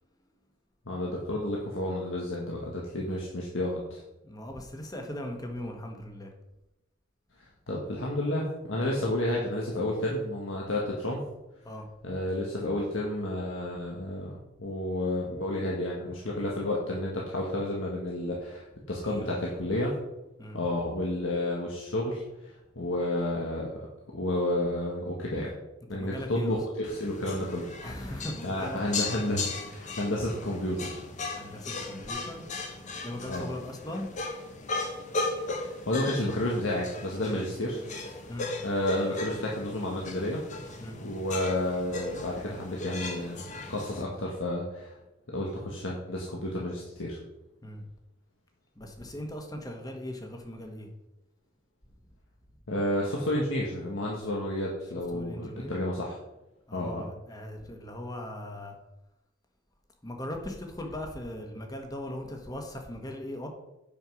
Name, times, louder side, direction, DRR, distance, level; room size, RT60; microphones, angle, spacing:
voice 1, 0.9-4.0 7.7-11.2 12.0-20.0 20.5-23.8 24.1-25.5 25.9-27.7 28.4-31.0 33.3-33.5 35.5-37.8 38.6-40.4 41.0-43.4 43.7-44.9 45.3-47.2 52.7-56.2 56.7-57.0, left 1 dB, 85° left, -3 dB, 1.6 m, -31 dB
voice 2, 4.2-6.3 8.7-9.0 11.6-11.9 19.1-19.5 20.4-20.6 25.9-26.6 27.8-28.8 30.2-30.3 31.3-32.4 33.0-34.1 37.2-37.4 38.3-38.5 40.8-41.0 47.6-47.9 48.7-50.9 55.1-55.7 56.7-58.8 60.0-63.5, left 1 dB, 20° left, 3 dB, 1.4 m, -39 dB
sound 1, 26.8-44.0, left 3 dB, 40° left, 1.2 m, -37 dB
9.0 x 5.6 x 6.2 m, 0.95 s
head